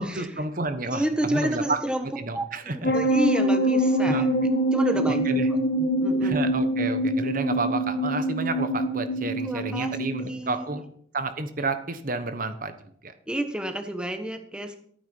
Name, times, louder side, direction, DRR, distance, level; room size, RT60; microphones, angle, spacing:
voice 1, 0.0-1.0 1.3-1.8 2.2-2.9 4.0-4.3 5.1-5.5 6.2-10.8 11.1-12.8 13.0-13.1, right 3 dB, 45° right, 10 dB, 1.1 m, -30 dB
voice 2, 0.9-2.1 2.3-2.4 2.7-4.3 4.7-6.4 9.4-10.7 13.3-14.8, right 1 dB, 5° right, 6 dB, 1.2 m, -30 dB
sound 1, 2.8-10.3, right 1 dB, 50° left, 1.4 m, -24 dB
14.5 x 9.5 x 5.4 m, 0.63 s
head